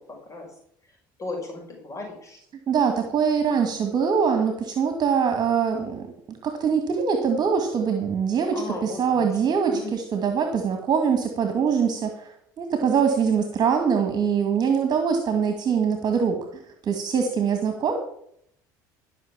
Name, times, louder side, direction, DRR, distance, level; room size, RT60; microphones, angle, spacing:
voice 1, 1.2-2.4 8.5-9.3 9.7-9.9, left 2 dB, 30° left, 0 dB, 5.4 m, -35 dB
voice 2, 2.7-16.4 16.8-18.0, right 6 dB, 45° right, 6 dB, 1.9 m, -23 dB
13.5 x 6.2 x 7.3 m, 0.71 s
hypercardioid pair, 75°, 10 cm